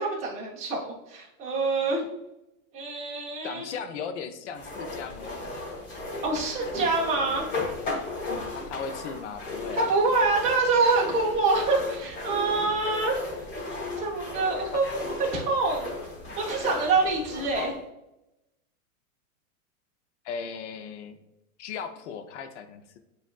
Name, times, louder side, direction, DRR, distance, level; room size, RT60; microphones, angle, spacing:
voice 1, 0.0-2.1 2.7-3.7 6.2-7.5 9.7-13.2 14.0-14.8 15.3-15.9 16.4-17.7, right 3 dB, 15° right, -2 dB, 0.6 m, -26 dB
voice 2, 3.4-5.9 8.5-9.9 14.7-14.8 20.2-21.2 21.6-23.0, left 6 dB, 55° left, 8 dB, 0.5 m, -37 dB
sound 1, 4.6-17.7, left 2 dB, 20° left, 0.8 m, -36 dB
7.2 x 2.5 x 2.2 m, 0.88 s
supercardioid pair, 155°, 44 cm